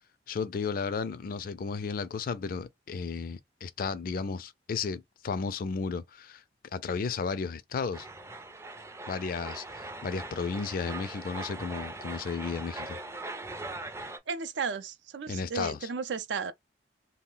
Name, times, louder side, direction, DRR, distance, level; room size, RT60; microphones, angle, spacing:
voice 1, 0.3-6.4 6.7-8.1 9.1-13.0 15.3-15.9, left 5 dB, 55° left, 0.4 m, -34 dB
sound 1, 7.9-14.2, right 2 dB, 15° right, 0.4 m, -41 dB
voice 2, 14.3-16.5, right 5 dB, 80° right, 0.4 m, -34 dB
2.3 x 2.1 x 3.7 m
head